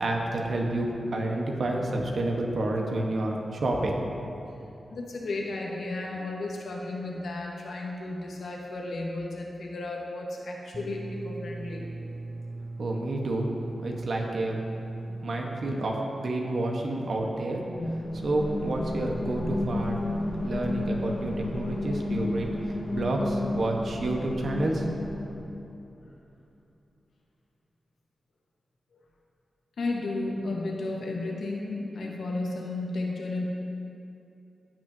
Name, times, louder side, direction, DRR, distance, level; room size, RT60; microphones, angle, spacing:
voice 1, 0.0-4.0 12.8-13.5 13.8-14.6 15.1-17.7 18.2-20.0 20.4-25.1, right 2 dB, 70° right, 0 dB, 1.1 m, -29 dB
voice 2, 4.9-11.9 26.0-26.1 28.9-29.0 29.8-33.4, left 2 dB, 85° left, -1 dB, 1.2 m, -33 dB
sound 1, 10.7-15.7, right 2 dB, 40° right, 0.3 m, -38 dB
sound 2, 17.8-25.5, left 1 dB, 65° left, 1.5 m, -32 dB
15.0 x 6.0 x 2.7 m, 2.8 s
cardioid pair, 65°, 0 cm